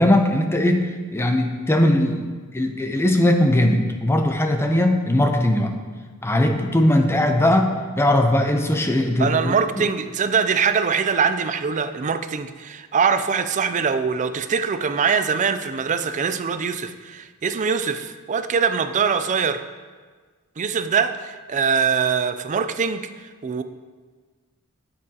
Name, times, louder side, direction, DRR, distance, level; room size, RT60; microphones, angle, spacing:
voice 1, 0.0-2.2 2.5-5.7 6.2-9.8, left 1 dB, 10° left, 5 dB, 0.6 m, -19 dB
voice 2, 9.2-19.6 20.6-23.6, right 6 dB, 35° right, 10 dB, 0.4 m, -23 dB
8.8 x 8.5 x 2.9 m, 1.4 s
head